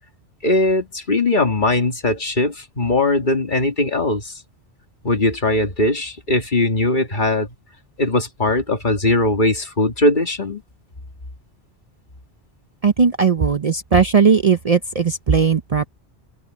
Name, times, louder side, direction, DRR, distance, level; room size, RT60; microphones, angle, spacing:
voice 1, 0.4-4.3 5.0-7.5 8.0-10.6, left 2 dB, 45° left, 2.2 m, -20 dB
voice 2, 12.8-15.9, right 6 dB, 40° right, 0.7 m, -17 dB
omnidirectional pair, 1.1 m